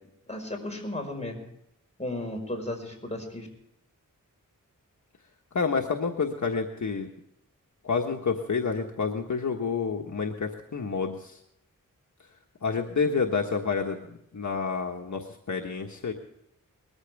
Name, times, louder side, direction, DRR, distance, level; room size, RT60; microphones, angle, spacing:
voice 1, 0.3-1.4 2.0-3.5, left 1 dB, 20° left, 2 dB, 5.1 m, -34 dB
voice 2, 5.5-7.1 7.8-11.4 12.6-14.1 14.3-16.1, left 5 dB, 60° left, 2 dB, 1.4 m, -29 dB
21.0 x 14.0 x 3.5 m, 0.79 s
wide cardioid pair, 85°, 34 cm